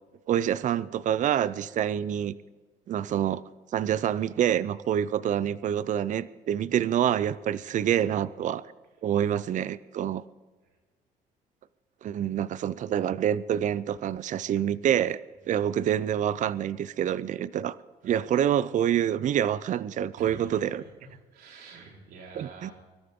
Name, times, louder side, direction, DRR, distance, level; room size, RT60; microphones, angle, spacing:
voice 1, 0.3-2.4 2.9-3.4 3.7-8.6 9.0-10.2 12.0-15.2 15.5-17.8 18.0-20.8 22.4-22.7, right 10 dB, 50° right, 17 dB, 0.5 m, -27 dB
voice 2, 20.2-22.7, right 4 dB, 70° right, -1 dB, 4.4 m, -47 dB
24.5 x 13.0 x 3.7 m, 1.3 s
cardioid pair, 110°, 17 cm